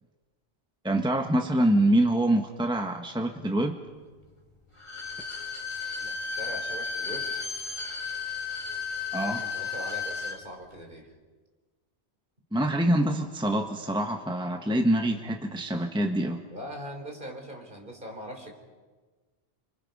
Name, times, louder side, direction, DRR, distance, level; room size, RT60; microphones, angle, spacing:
voice 1, 0.8-3.8 9.1-9.4 12.5-16.4, right 1 dB, 5° right, 4 dB, 1.3 m, -25 dB
Bowed string instrument, 4.7-10.4 10.7-10.8, left 5 dB, 25° left, 3.4 m, -34 dB
voice 2, 6.0-7.3 9.2-11.1 16.5-18.5, equal, 45° right, 2 dB, 4.4 m, -41 dB
30.0 x 25.0 x 5.5 m, 1.4 s
omnidirectional pair, 1.2 m